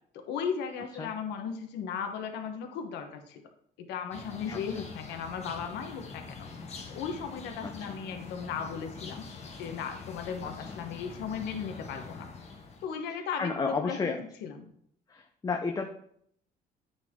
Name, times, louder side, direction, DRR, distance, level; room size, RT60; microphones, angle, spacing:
voice 1, 0.1-3.4 3.8-6.5 6.9-9.3 9.6-12.3 12.8-14.2 14.4-14.7, left 6 dB, 85° left, 5 dB, 1.0 m, -36 dB
sound 1, 4.1-12.9, left 4 dB, 40° left, 1.3 m, -44 dB
voice 2, 7.6-8.0 10.4-10.8 13.1-14.2 15.1-15.9, left 4 dB, 20° left, 4 dB, 0.6 m, -33 dB
8.9 x 4.1 x 3.6 m, 0.68 s
cardioid pair, 110°, 17 cm